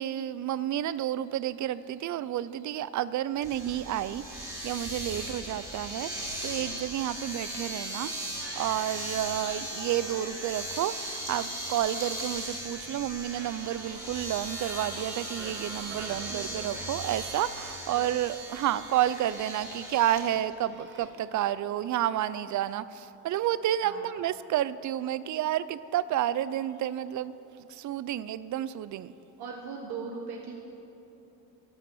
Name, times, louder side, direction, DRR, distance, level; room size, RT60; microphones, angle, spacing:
voice 1, 0.0-8.1 8.6-27.3 27.6-29.1, right 12 dB, 50° right, 17 dB, 0.4 m, -30 dB
Domestic sounds home sounds, 3.4-20.2, right 1 dB, 10° right, 2.4 m, -38 dB
sound 1, 4.9-21.1, right 2 dB, 30° right, 1.8 m, -50 dB
voice 2, 16.3-16.8 17.9-18.1 23.8-24.1 29.4-30.5, right 5 dB, 75° right, 0 dB, 1.5 m, -40 dB
12.5 x 11.0 x 7.0 m, 2.9 s
cardioid pair, 150°, 38 cm